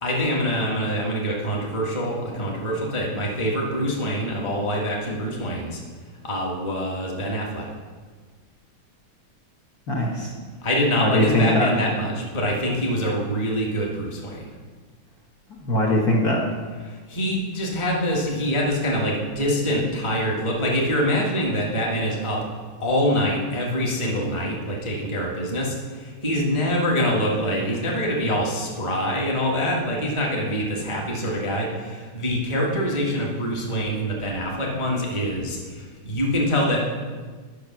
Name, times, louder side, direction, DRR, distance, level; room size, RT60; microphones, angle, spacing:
voice 1, 0.0-5.8 6.2-7.6 10.6-14.4 16.8-22.4 22.8-36.8, equal, 15° left, -2 dB, 1.4 m, -25 dB
voice 2, 9.9-10.3 11.0-11.7 15.5-16.4, left 1 dB, 50° left, -3 dB, 1.6 m, -21 dB
10.5 x 6.2 x 5.9 m, 1.5 s
omnidirectional pair, 2.3 m